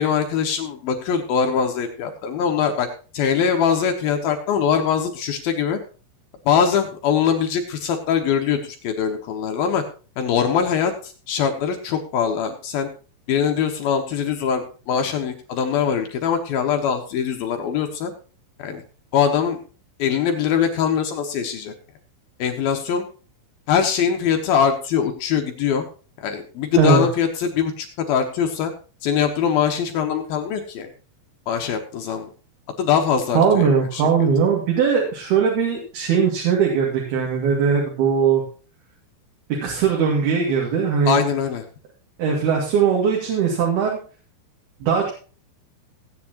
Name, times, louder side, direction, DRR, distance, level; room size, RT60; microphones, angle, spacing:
voice 1, 0.0-2.9 3.1-5.8 6.5-9.8 10.2-12.9 13.3-18.1 18.6-18.8 19.1-19.6 20.0-21.7 22.4-23.1 23.7-25.8 26.2-28.7 29.0-30.9 31.5-32.3 32.8-34.3 41.1-41.6, left 7 dB, 70° left, 4 dB, 2.4 m, -22 dB
voice 2, 33.3-38.4 39.5-41.2 42.2-44.0 44.8-45.1, right 6 dB, 55° right, -2 dB, 4.1 m, -19 dB
16.5 x 9.4 x 3.0 m, 0.37 s
omnidirectional pair, 5.6 m